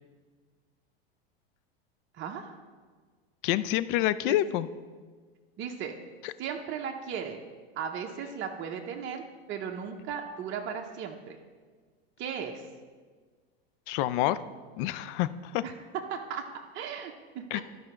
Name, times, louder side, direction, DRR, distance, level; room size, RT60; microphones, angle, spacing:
voice 1, 2.2-2.5 4.3-4.4 5.6-5.9 6.4-7.4 7.8-11.4 12.2-12.6 15.6-15.7 16.1-17.6, right 7 dB, 35° right, 2 dB, 0.8 m, -36 dB
voice 2, 3.4-4.7 6.2-6.3 13.9-14.4 14.8-15.6 17.5-17.6, left 14 dB, 55° left, 15 dB, 0.5 m, -27 dB
11.5 x 5.0 x 4.4 m, 1.5 s
hypercardioid pair, 95°, 32 cm